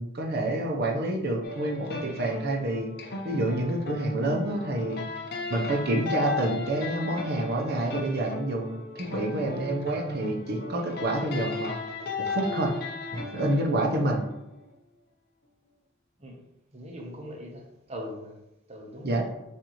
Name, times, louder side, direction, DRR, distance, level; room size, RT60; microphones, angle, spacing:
voice 1, 0.0-2.9 3.2-5.0 5.5-11.7 12.3-12.7 13.1-14.2 19.0-19.2, right 1 dB, 55° right, 1 dB, 0.8 m, -28 dB
sound 1, 1.4-14.6, left 3 dB, 55° left, 0.7 m, -36 dB
voice 2, 16.7-18.3 18.7-19.1, equal, 35° right, 0 dB, 0.9 m, -40 dB
6.1 x 2.7 x 3.1 m, 0.89 s
head